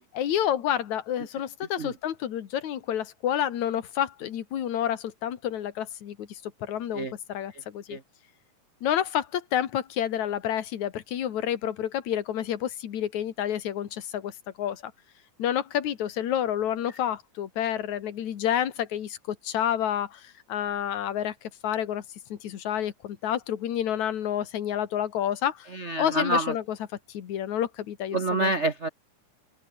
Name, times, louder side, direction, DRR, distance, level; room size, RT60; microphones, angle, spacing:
voice 1, 0.1-8.0 8.8-14.9 15.4-22.0 22.3-25.7 26.0-26.6 27.1-28.5, left 10 dB, 75° left, 3.1 m, -29 dB
voice 2, 25.7-26.5 28.1-28.9, right 2 dB, 85° right, 0.6 m, -27 dB
open air
omnidirectional pair, 3.4 m